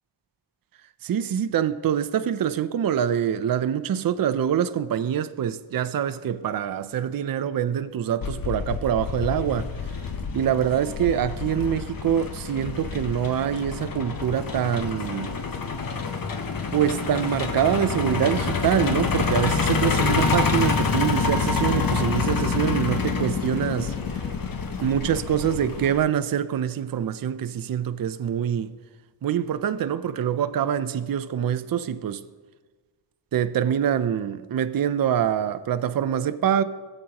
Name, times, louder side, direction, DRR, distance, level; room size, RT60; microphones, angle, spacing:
voice 1, 1.0-9.7 10.3-15.4 16.7-23.9 24.8-28.8 29.2-32.2 33.3-36.6, right 9 dB, 45° right, 0.5 m, -25 dB
Truck, 8.2-26.0, left 5 dB, 45° left, 0.9 m, -27 dB
17.5 x 7.9 x 2.9 m
cardioid pair, 90°, 49 cm